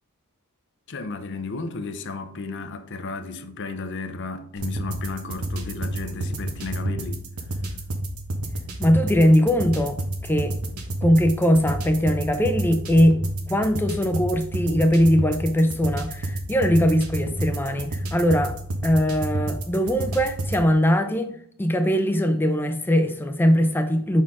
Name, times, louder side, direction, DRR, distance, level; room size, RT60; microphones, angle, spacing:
voice 1, 0.9-7.2, left 3 dB, 55° left, 0.6 m, -34 dB
sound 1, 4.6-20.6, right 1 dB, 80° right, 1.1 m, -30 dB
voice 2, 8.8-10.6 11.0-13.2 13.5-18.6 18.8-21.3 21.6-24.2, equal, 10° left, 0.5 m, -21 dB
6.1 x 4.4 x 3.5 m
head